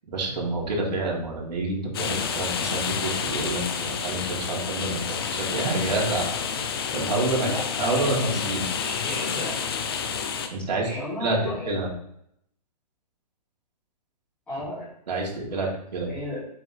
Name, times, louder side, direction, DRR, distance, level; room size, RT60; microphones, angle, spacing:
voice 1, 0.1-6.3 6.9-7.5 7.8-8.7 10.5-10.9 11.2-11.9 15.1-16.1, right 2 dB, 85° right, -3 dB, 3.5 m, -28 dB
sound 1, 1.9-10.5, left 6 dB, 35° left, 0.7 m, -29 dB
voice 2, 7.3-8.2 8.6-9.6 10.8-11.7 14.5-14.9 15.4-15.7 16.0-16.4, left 1 dB, 5° left, -16 dB, 3.2 m, -34 dB
7.9 x 6.5 x 3.4 m, 0.72 s
hypercardioid pair, 180°, 21 cm